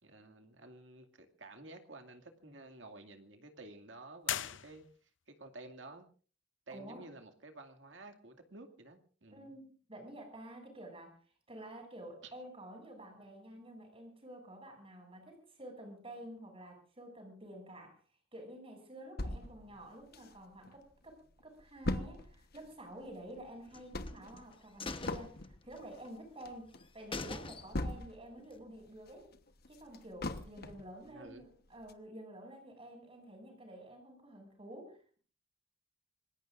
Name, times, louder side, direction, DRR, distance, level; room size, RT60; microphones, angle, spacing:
voice 1, 0.0-6.1 6.7-9.5 12.2-12.3 19.6-19.8 31.0-31.4, right 2 dB, 70° right, 6 dB, 2.3 m, -52 dB
sound 1, 4.2-5.3, left 11 dB, 70° left, 0.7 m, -39 dB
voice 2, 6.7-7.1 9.3-11.2 11.5-18.0 18.3-29.3 29.7-35.2, right 1 dB, 30° right, 4 dB, 6.9 m, -50 dB
sound 2, 19.2-20.7 21.1-21.2 21.4-28.4 28.8-30.9 31.4-31.5 31.9-32.0, left 2 dB, 55° left, 1.2 m, -41 dB
sound 3, 23.7-24.4 24.8-26.1 26.4-26.5 26.8-26.9 27.1-28.0 28.4-28.5, left 3 dB, 30° left, 1.1 m, -43 dB
26.5 x 20.5 x 2.6 m, 0.40 s
head